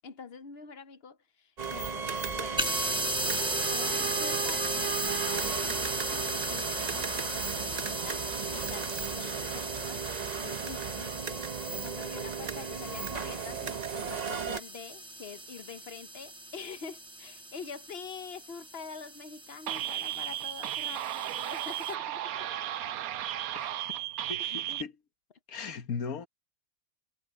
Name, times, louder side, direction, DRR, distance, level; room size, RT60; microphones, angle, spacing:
voice 1, 0.0-2.9 3.7-8.3 8.5-10.1 10.4-11.5 11.8-22.5 23.6-23.7 24.4-24.8, left 6 dB, 50° left, 0.9 m, -45 dB
sound 1, 1.6-14.6, right 7 dB, 45° right, 0.6 m, -35 dB
sound 2, 2.6-21.9, right 1 dB, 5° right, 0.9 m, -36 dB
sound 3, 19.7-24.8, right 12 dB, 75° right, 1.1 m, -34 dB
voice 2, 24.3-24.9 25.5-26.3, left 5 dB, 75° left, 1.6 m, -37 dB
omnidirectional pair, 1.5 m